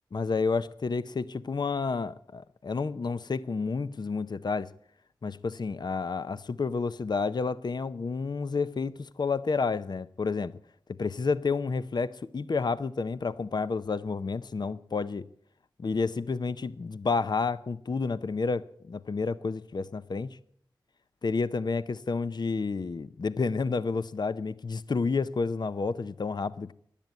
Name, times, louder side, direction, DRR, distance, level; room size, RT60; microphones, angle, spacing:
voice 1, 0.1-4.7 5.2-10.6 11.0-15.2 15.8-20.4 21.2-26.7, left 4 dB, 60° left, 0.6 m, -30 dB
15.5 x 10.5 x 8.3 m
wide cardioid pair, 55°, 8 cm